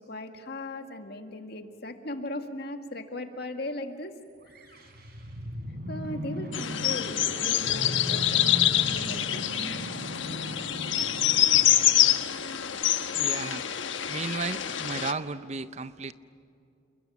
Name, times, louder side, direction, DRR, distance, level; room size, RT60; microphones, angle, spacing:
voice 1, 0.0-4.1 4.6-4.8 5.9-9.5, left 1 dB, 55° left, 5 dB, 2.0 m, -38 dB
sound 1, 4.4-12.6, equal, 55° right, 4.0 m, -37 dB
sound 2, 6.5-15.1, left 11 dB, 75° left, 1.2 m, -26 dB
voice 2, 13.1-13.7 14.1-16.1, right 4 dB, 35° right, 13 dB, 0.6 m, -34 dB
29.0 x 21.0 x 9.2 m, 2.5 s
head